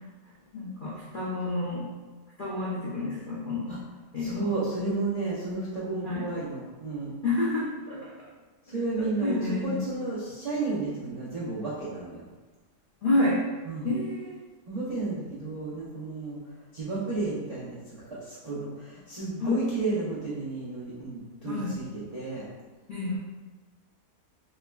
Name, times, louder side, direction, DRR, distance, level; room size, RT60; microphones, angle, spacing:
voice 1, 0.5-1.9 2.4-3.7 4.1-4.4 6.0-6.2 7.2-8.1 9.2-9.8 13.0-13.4 13.8-14.3 19.4-19.6 21.4-21.7 22.9-23.2, left 2 dB, 65° left, -8 dB, 0.5 m, -29 dB
voice 2, 4.2-7.1 8.6-12.3 13.6-13.9 14.7-22.5, right 3 dB, 60° right, -10 dB, 0.4 m, -32 dB
3.5 x 3.2 x 2.2 m, 1.2 s
omnidirectional pair, 1.7 m